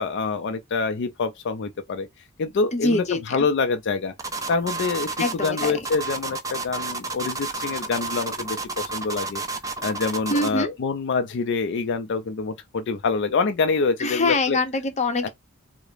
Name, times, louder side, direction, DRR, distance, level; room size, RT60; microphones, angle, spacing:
voice 1, 0.0-2.1 2.4-4.1 4.5-9.4 9.8-14.6 15.2-15.3, left 4 dB, 55° left, 0.4 m, -26 dB
voice 2, 2.7-3.2 5.2-5.8 10.3-10.7 14.0-15.3, left 2 dB, 35° left, 0.7 m, -24 dB
sound 1, 4.2-10.6, right 3 dB, 15° right, 0.4 m, -31 dB
4.8 x 2.0 x 2.5 m
head